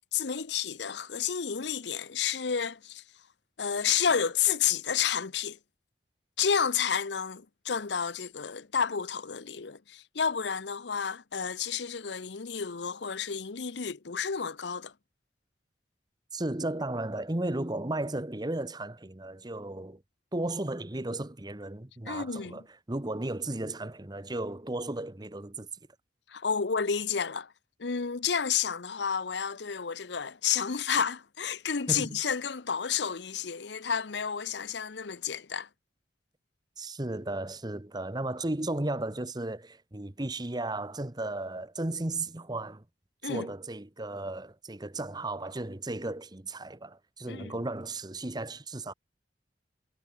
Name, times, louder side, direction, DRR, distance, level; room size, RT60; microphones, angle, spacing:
voice 1, 0.1-3.0 3.6-5.6 6.4-14.9 22.0-22.6 26.3-27.5 27.8-35.7 43.2-43.5 47.3-47.6, left 7 dB, 70° left, 0.8 m, -30 dB
voice 2, 16.3-20.0 20.3-22.6 22.9-25.7 31.9-32.2 36.8-42.8 43.2-48.9, right 2 dB, 25° right, 1.1 m, -34 dB
head